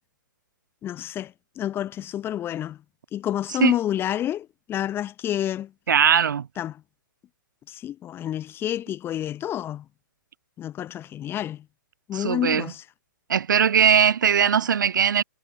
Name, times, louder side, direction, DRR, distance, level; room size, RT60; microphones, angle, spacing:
voice 1, 0.8-2.8 3.1-5.7 6.6-6.8 7.7-9.8 10.6-11.6 12.1-12.8, left 11 dB, 20° left, 4.4 m, -29 dB
voice 2, 5.9-6.5 12.1-12.7 13.3-15.2, right 8 dB, 65° right, 1.9 m, -20 dB
hypercardioid pair, 125°, 11 cm